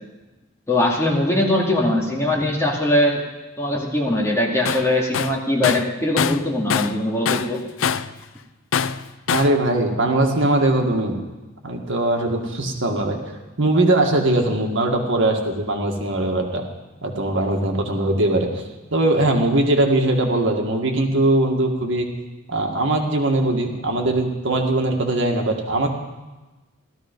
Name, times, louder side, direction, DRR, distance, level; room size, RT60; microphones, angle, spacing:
voice 1, 0.7-3.2 3.6-7.6, left 1 dB, 15° left, -3 dB, 2.3 m, -21 dB
Tools, 4.7-4.9 5.1-7.0 7.3-8.2 8.7-9.6, left 7 dB, 65° left, 0.5 m, -23 dB
voice 2, 9.3-11.2 11.6-13.2 13.6-16.7 17.0-18.6 18.9-22.1 22.5-25.9, right 1 dB, 65° right, 2 dB, 1.9 m, -20 dB
16.5 x 13.5 x 5.3 m, 1.2 s
head